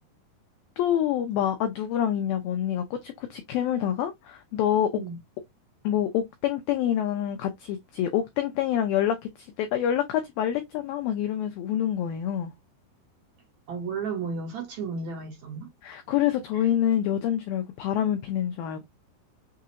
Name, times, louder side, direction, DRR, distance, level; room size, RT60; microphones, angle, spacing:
voice 1, 0.8-4.9 5.8-12.5 15.8-18.9, left 10 dB, 85° left, 2.0 m, -27 dB
voice 2, 13.7-15.7 16.5-16.6, right 5 dB, 60° right, 2.0 m, -33 dB
6.4 x 2.5 x 2.8 m
omnidirectional pair, 4.9 m